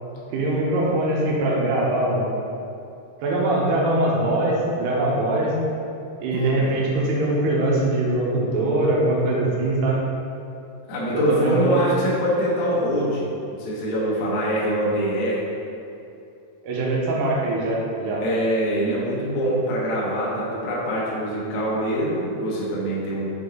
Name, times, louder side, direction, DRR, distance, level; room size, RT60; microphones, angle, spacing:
voice 1, 0.3-2.3 3.2-5.5 6.2-10.0 11.1-11.8 16.6-18.2, right 2 dB, 90° right, -4 dB, 3.2 m, -22 dB
voice 2, 6.3-6.7 10.9-15.4 18.2-23.3, equal, 65° left, -6 dB, 1.9 m, -24 dB
6.7 x 5.5 x 3.9 m, 2.7 s
omnidirectional pair, 4.6 m